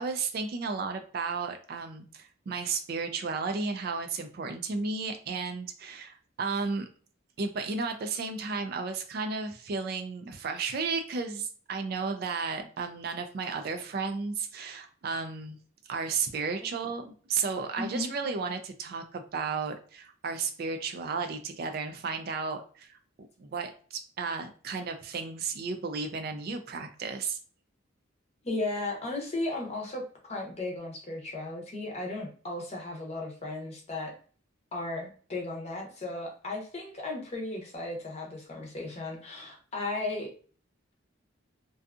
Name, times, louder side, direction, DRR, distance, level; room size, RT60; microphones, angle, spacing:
voice 1, 0.0-6.9 7.4-15.6 15.8-27.4, right 4 dB, 45° right, 6 dB, 0.3 m, -33 dB
voice 2, 17.8-18.1 28.4-34.1 34.7-40.3, left 2 dB, 30° left, 0 dB, 0.7 m, -35 dB
2.6 x 2.3 x 2.4 m, 0.42 s
head